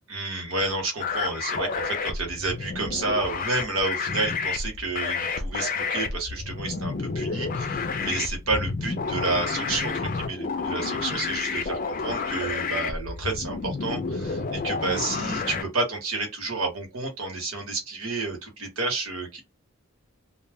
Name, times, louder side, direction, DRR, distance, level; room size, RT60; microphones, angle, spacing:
voice 1, 0.1-19.4, right 3 dB, 85° right, 1.1 m, -30 dB
sound 1, 1.0-15.6, left 4 dB, 40° left, 0.4 m, -30 dB
2.3 x 2.1 x 3.4 m
head